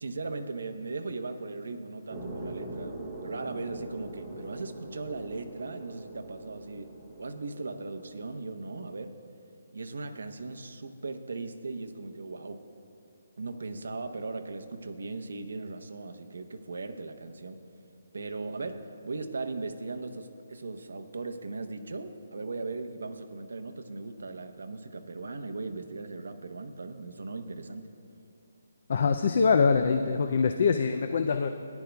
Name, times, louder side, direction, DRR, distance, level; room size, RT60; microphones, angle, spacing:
voice 1, 0.0-6.9 7.2-9.2 9.7-12.6 13.4-17.6 18.1-27.9, right 3 dB, 75° right, 6 dB, 0.8 m, -38 dB
sound 1, 2.1-8.4, right 1 dB, 10° right, 0.8 m, -42 dB
voice 2, 28.9-31.5, left 5 dB, 40° left, 7 dB, 0.3 m, -24 dB
18.0 x 10.5 x 2.3 m, 2.6 s
hypercardioid pair, 175°, 0 cm